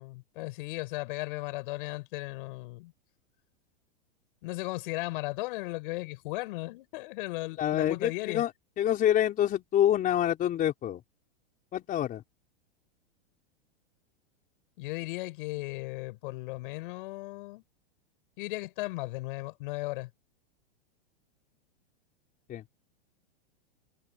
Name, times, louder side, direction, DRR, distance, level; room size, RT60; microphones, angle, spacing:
voice 1, 0.0-2.9 4.4-8.4 14.8-17.6 18.4-20.1, left 22 dB, 55° left, 7.7 m, -36 dB
voice 2, 7.6-8.5 8.8-11.0 11.7-12.2 22.5-22.6, left 11 dB, 25° left, 4.2 m, -26 dB
hypercardioid pair, 140°, 31 cm